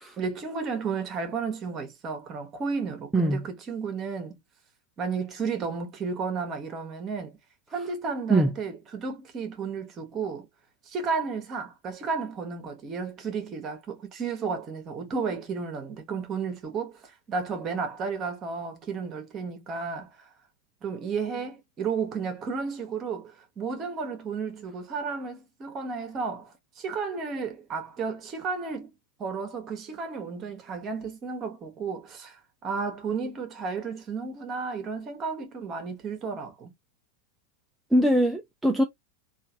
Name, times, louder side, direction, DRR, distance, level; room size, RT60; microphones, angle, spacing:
voice 1, 0.2-4.4 5.0-7.4 7.7-10.5 10.9-20.2 20.8-28.9 29.2-32.4 32.6-36.7, right 5 dB, 35° right, 1.4 m, -33 dB
voice 2, 37.9-38.8, right 1 dB, 5° right, 0.6 m, -22 dB
3.6 x 2.6 x 2.8 m
hypercardioid pair, 95°, 0 cm